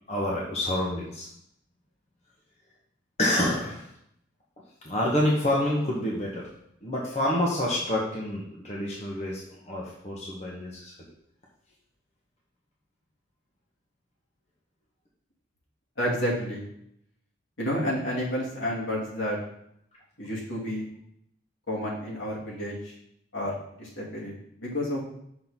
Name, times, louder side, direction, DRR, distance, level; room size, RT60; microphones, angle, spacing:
voice 1, 0.1-1.3 3.2-3.9 4.8-6.5 6.8-9.4 9.7-10.9, left 1 dB, 35° left, -4 dB, 1.0 m, -27 dB
voice 2, 16.0-16.6 17.6-19.4 20.2-20.9 21.7-22.9 23.3-25.0, equal, 80° left, -4 dB, 2.3 m, -30 dB
6.1 x 3.8 x 5.5 m, 0.73 s
head